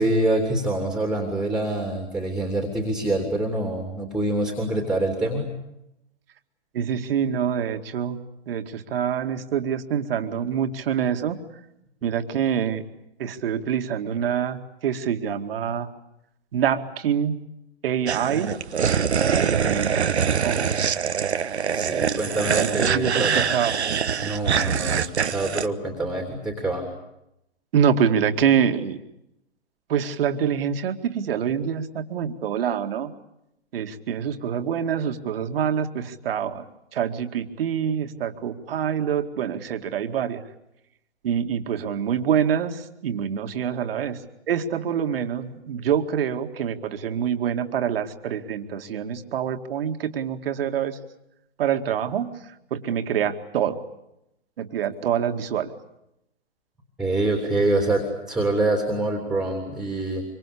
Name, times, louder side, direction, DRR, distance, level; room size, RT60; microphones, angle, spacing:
voice 1, 0.0-5.5 21.7-23.5 24.2-26.9 57.0-60.2, right 2 dB, ahead, 3 dB, 3.2 m, -25 dB
voice 2, 6.7-8.2 8.5-11.4 12.0-12.8 13.2-15.9 16.5-17.4 17.8-18.6 19.5-20.7 22.0-23.8 27.7-29.0 29.9-33.1 33.7-40.4 41.2-44.2 44.5-51.0 51.6-53.8 54.6-55.7, right 8 dB, 60° right, 7 dB, 2.3 m, -26 dB
sound 1, 18.1-25.7, right 7 dB, 85° right, 1.3 m, -24 dB
25.5 x 24.5 x 8.5 m, 0.84 s
hypercardioid pair, 130°, 32 cm